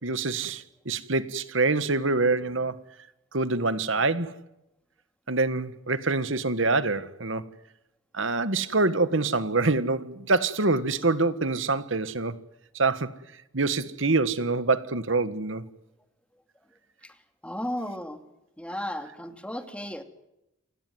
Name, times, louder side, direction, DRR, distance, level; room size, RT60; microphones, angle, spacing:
voice 1, 0.0-2.8 3.3-4.3 5.3-7.4 8.1-12.3 12.7-13.1 13.5-15.6, right 3 dB, 75° right, 1.6 m, -25 dB
voice 2, 17.4-18.2 18.6-20.0, left 1 dB, 5° left, 2.6 m, -34 dB
28.5 x 17.5 x 9.4 m
head